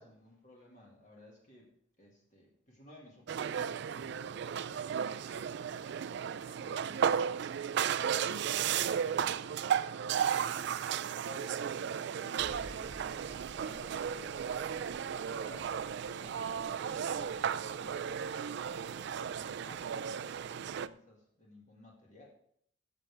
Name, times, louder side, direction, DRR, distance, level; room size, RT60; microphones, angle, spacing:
voice 1, 0.0-1.7 2.0-5.0 5.2-7.3 7.9-8.6 8.9-9.5 10.0-14.5 15.0-15.7 16.0-22.3, left 1 dB, 35° left, -3 dB, 1.8 m, -57 dB
sound 1, 3.3-20.9, right 8 dB, 60° right, 0.3 m, -34 dB
sound 2, 12.4-20.9, right 1 dB, 25° right, 1.1 m, -55 dB
13.0 x 6.7 x 3.3 m, 0.67 s
head